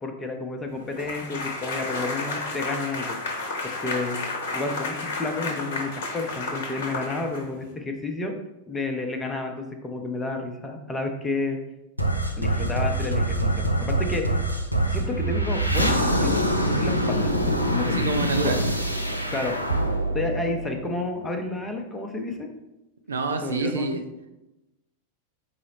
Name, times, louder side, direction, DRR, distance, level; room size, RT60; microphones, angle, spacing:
voice 1, 0.0-3.2 3.6-8.3 8.7-11.6 12.4-14.4 14.9-16.4 16.8-17.3 17.7-18.3 19.3-19.5 20.1-22.5 23.4-24.0, left 3 dB, 15° left, 4 dB, 0.6 m, -31 dB
sound 1, 1.0-7.7, left 3 dB, 55° left, 1.0 m, -32 dB
sound 2, 12.0-21.3, right 1 dB, 85° left, 0.4 m, -25 dB
voice 2, 17.9-18.6 23.1-24.0, right 3 dB, 70° right, 6 dB, 0.4 m, -27 dB
4.7 x 2.0 x 4.2 m, 0.94 s
figure-of-eight pair, 90°, 0 cm